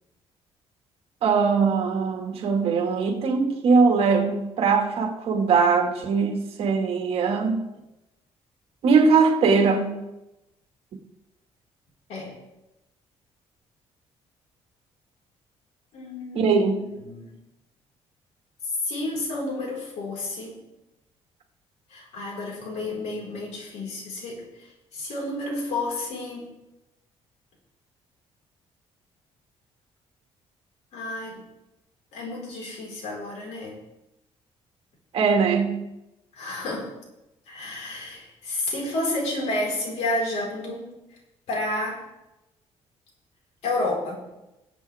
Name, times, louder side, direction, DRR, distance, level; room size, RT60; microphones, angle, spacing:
voice 1, 1.2-7.6 8.8-10.0 16.3-16.8 35.1-35.9, right 5 dB, 60° right, 2.0 m, -21 dB
voice 2, 15.9-17.4 18.6-20.7 21.9-26.6 30.9-31.5 32.1-33.8 36.3-36.9 37.5-41.0 41.5-42.1 43.6-44.2, left 2 dB, 75° left, 4.9 m, -31 dB
20.5 x 8.3 x 3.6 m
cardioid pair, 155°, 11 cm